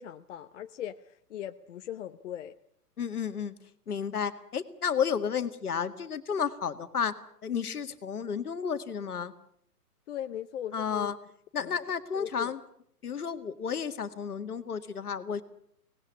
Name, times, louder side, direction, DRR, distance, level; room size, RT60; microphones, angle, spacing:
voice 1, 0.0-2.5 10.1-11.1 11.6-11.8 12.1-12.5, left 10 dB, 50° left, 9 dB, 0.9 m, -39 dB
voice 2, 3.0-3.5 3.9-7.2 7.4-9.3 10.7-11.2 11.5-12.6 13.0-15.4, left 7 dB, 70° left, 9 dB, 2.0 m, -32 dB
24.0 x 19.0 x 8.5 m, 0.69 s
figure-of-eight pair, 115°, 46 cm